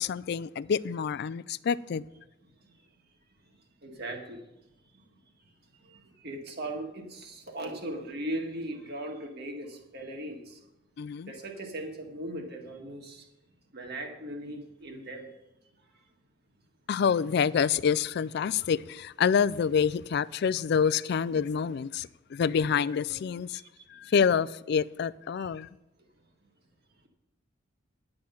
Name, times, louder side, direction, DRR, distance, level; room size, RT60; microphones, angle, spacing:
voice 1, 0.0-2.0 11.0-11.3 16.9-23.6 23.9-25.7, left 6 dB, 55° left, 0.3 m, -27 dB
voice 2, 3.8-4.4 4.9-5.0 5.8-10.6 11.3-13.3 13.7-15.3 23.5-23.6 25.4-25.5, right 1 dB, 55° right, 1.8 m, -38 dB
10.5 x 8.8 x 5.7 m
head